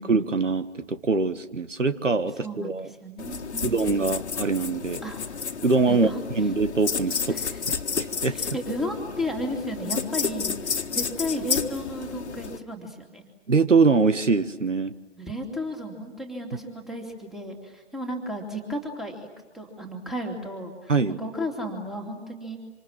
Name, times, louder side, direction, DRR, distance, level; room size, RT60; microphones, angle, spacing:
voice 1, 0.0-2.9 3.6-5.0 5.6-8.4 13.5-14.9 20.9-21.2, right 4 dB, 80° right, 11 dB, 1.6 m, -23 dB
voice 2, 2.4-3.8 5.0-5.2 5.9-6.5 7.3-7.6 8.3-13.3 15.2-19.3 19.5-22.6, equal, ahead, 2 dB, 2.7 m, -34 dB
sound 1, 3.2-12.6, left 6 dB, 65° left, 1.8 m, -31 dB
26.5 x 26.5 x 7.4 m, 1.3 s
figure-of-eight pair, 140°, 36 cm